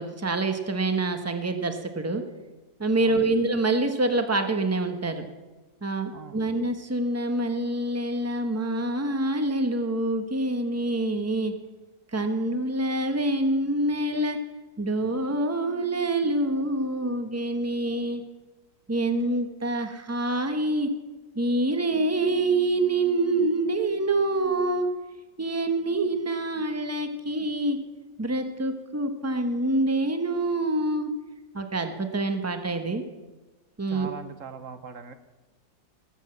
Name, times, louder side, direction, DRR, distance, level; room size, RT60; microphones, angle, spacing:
voice 1, 0.0-2.2 2.8-5.3 5.8-11.5 12.1-14.4 14.8-18.2 18.9-20.9 21.4-24.9 25.4-27.8 28.2-31.1 31.5-33.0 33.8-34.1, right 2 dB, 10° right, 7 dB, 0.8 m, -26 dB
voice 2, 3.0-3.3 6.1-6.4 33.9-35.1, right 6 dB, 55° right, 11 dB, 1.1 m, -40 dB
18.0 x 8.1 x 7.6 m, 1.2 s
omnidirectional pair, 1.8 m